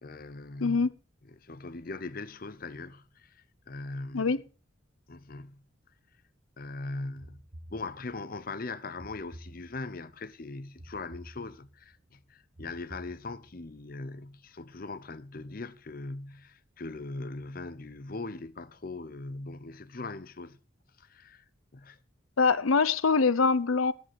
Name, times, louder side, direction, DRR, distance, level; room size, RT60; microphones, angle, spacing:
voice 1, 0.0-0.9 1.3-4.3 5.1-5.6 6.6-7.4 7.7-20.6 21.0-21.4 21.7-22.0, left 3 dB, 45° left, 0.7 m, -40 dB
sound 1, 7.2-8.3 9.0-10.1 10.8-11.9 12.6-13.7, equal, 45° right, 1.4 m, -50 dB
voice 2, 22.4-23.9, left 4 dB, 85° left, 0.8 m, -24 dB
14.0 x 11.5 x 4.8 m
head